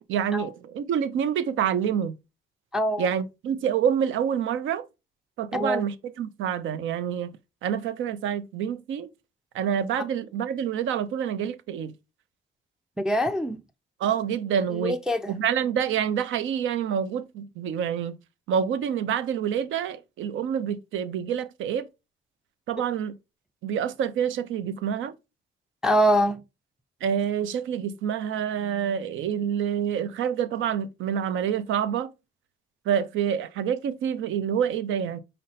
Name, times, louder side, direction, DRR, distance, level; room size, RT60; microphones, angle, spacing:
voice 1, 0.1-2.1 3.0-4.9 5.4-9.1 9.5-11.9 14.0-15.0 15.3-18.2 18.5-21.9 22.7-23.1 23.6-25.1 27.0-32.1 32.9-35.2, right 8 dB, 80° right, 0.6 m, -27 dB
voice 2, 2.7-3.1 5.5-5.9 13.0-13.6 14.7-15.4 25.8-26.4, equal, 5° right, 0.4 m, -24 dB
5.3 x 2.2 x 4.0 m
cardioid pair, 90°, 20 cm